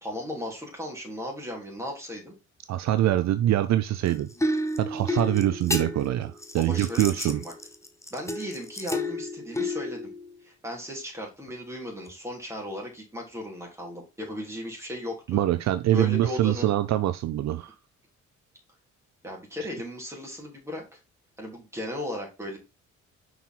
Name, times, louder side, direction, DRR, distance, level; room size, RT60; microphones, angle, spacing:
voice 1, 0.0-2.3 6.6-7.5 8.1-10.1 10.4-15.4 15.9-16.7 19.2-21.0 21.4-22.6, left 1 dB, 10° right, 3.2 m, -36 dB
voice 2, 2.7-4.3 4.8-7.4 15.3-17.7 19.6-19.7, right 13 dB, 65° right, 0.5 m, -24 dB
sound 1, 4.1-10.4 12.1-12.2, left 1 dB, 10° left, 0.9 m, -31 dB
5.5 x 4.7 x 3.7 m
cardioid pair, 90°, 30 cm